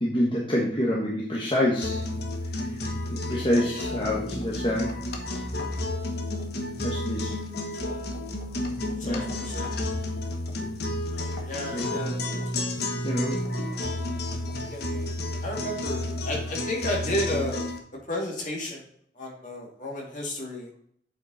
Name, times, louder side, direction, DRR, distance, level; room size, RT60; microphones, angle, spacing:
voice 1, 0.0-2.0 2.5-5.0 6.8-7.3 9.0-9.2 11.3-11.4 11.7-12.2 13.0-13.3, left 1 dB, 30° left, -4 dB, 1.3 m, -27 dB
sound 1, 1.8-17.8, left 1 dB, 60° left, 1.2 m, -31 dB
voice 2, 9.0-9.7 11.1-12.4 13.5-13.9 14.7-15.0 15.4-17.6 18.1-18.8 19.2-20.7, left 1 dB, 45° left, -2 dB, 2.6 m, -33 dB
8.3 x 5.3 x 4.1 m, 0.66 s
head